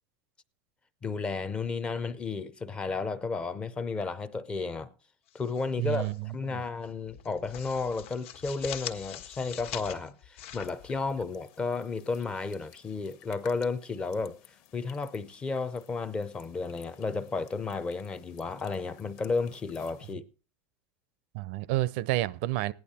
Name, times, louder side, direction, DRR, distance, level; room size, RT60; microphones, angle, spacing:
voice 1, 1.0-4.9 5.3-14.4 14.7-20.3, left 4 dB, 15° left, 0.5 m, -33 dB
sound 1, 5.3-6.2 6.5-6.7 7.1-11.6, left 11 dB, 70° left, 1.5 m, -43 dB
voice 2, 5.8-6.6 21.3-22.7, right 16 dB, 55° right, 0.5 m, -30 dB
sound 2, 10.6-20.1, left 10 dB, 45° left, 1.2 m, -57 dB
15.5 x 10.5 x 4.2 m
supercardioid pair, 170°, 7 cm